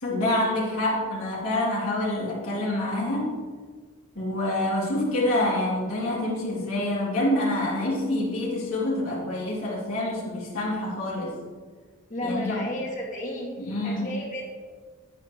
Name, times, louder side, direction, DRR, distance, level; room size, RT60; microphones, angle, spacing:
voice 1, 0.0-3.3 4.1-11.4 12.2-12.6 13.6-14.1, left 1 dB, 70° left, -6 dB, 2.9 m, -27 dB
voice 2, 12.1-13.5 13.8-14.5, left 1 dB, 35° left, -3 dB, 2.0 m, -32 dB
9.6 x 8.9 x 3.0 m, 1.5 s
head